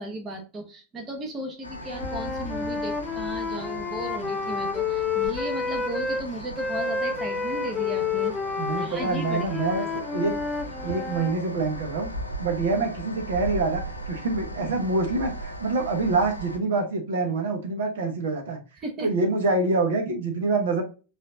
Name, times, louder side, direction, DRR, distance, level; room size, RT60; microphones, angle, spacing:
voice 1, 0.0-8.3 8.8-9.6 18.8-19.1, right 1 dB, 25° right, 4 dB, 1.0 m, -36 dB
sound 1, 1.6-16.6, equal, 90° left, 0.8 m, -38 dB
Wind instrument woodwind instrument, 1.9-6.2 6.6-11.4, left 4 dB, 10° left, 0.5 m, -30 dB
voice 2, 8.6-10.4 10.8-12.1 12.4-18.6 19.0-20.8, right 3 dB, 60° right, 4 dB, 1.0 m, -26 dB
7.2 x 2.7 x 2.5 m, 0.33 s
figure-of-eight pair, 90°, 0 cm